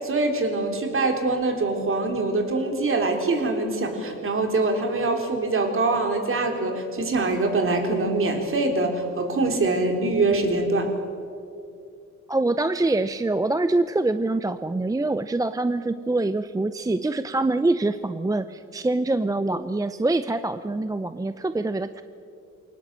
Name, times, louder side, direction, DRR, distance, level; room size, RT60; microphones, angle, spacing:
voice 1, 0.0-10.9, right 3 dB, 45° right, 4 dB, 3.8 m, -24 dB
voice 2, 12.3-22.0, right 2 dB, 10° right, 12 dB, 0.6 m, -25 dB
23.0 x 19.0 x 7.6 m, 2.5 s
cardioid pair, 90°, 30 cm